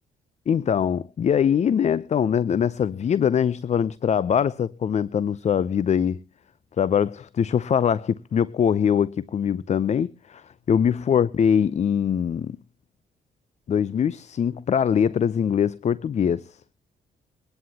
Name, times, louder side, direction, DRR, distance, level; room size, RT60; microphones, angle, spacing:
voice 1, 0.5-6.2 6.8-12.6 13.7-16.6, left 8 dB, 45° left, 0.6 m, -22 dB
23.5 x 11.0 x 2.8 m
cardioid pair, 75°, 16 cm